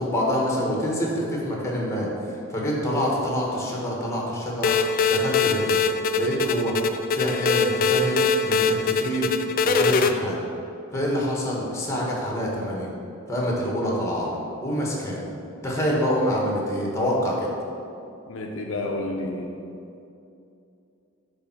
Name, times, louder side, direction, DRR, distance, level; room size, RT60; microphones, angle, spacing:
voice 1, 0.0-2.1 2.5-4.7 5.1-5.8 6.2-6.7 7.1-9.3 9.6-10.4 10.9-12.9 13.3-14.3 14.6-15.3 15.6-17.5, equal, 15° left, -3 dB, 1.4 m, -26 dB
sound 1, 4.6-10.1, left 4 dB, 40° left, 0.3 m, -22 dB
voice 2, 18.3-19.6, left 2 dB, 70° left, 1 dB, 0.7 m, -30 dB
8.6 x 3.6 x 6.0 m, 2.7 s
head